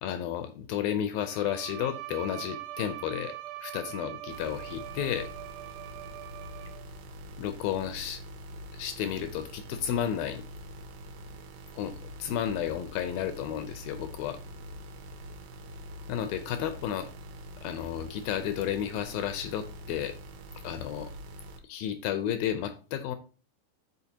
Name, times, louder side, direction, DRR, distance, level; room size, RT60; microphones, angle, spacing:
voice 1, 0.0-3.3 3.6-5.3 7.4-8.2 8.7-10.5 11.8-14.4 16.1-17.1 17.6-20.2 20.6-21.1 21.6-23.2, left 10 dB, 85° left, 9 dB, 2.0 m, -32 dB
Bowed string instrument, 1.2-7.0, right 15 dB, 70° right, 2.8 m, -42 dB
sound 1, 4.3-21.6, equal, 85° right, 3.2 m, -45 dB
12.5 x 4.5 x 2.8 m, 0.34 s
omnidirectional pair, 4.8 m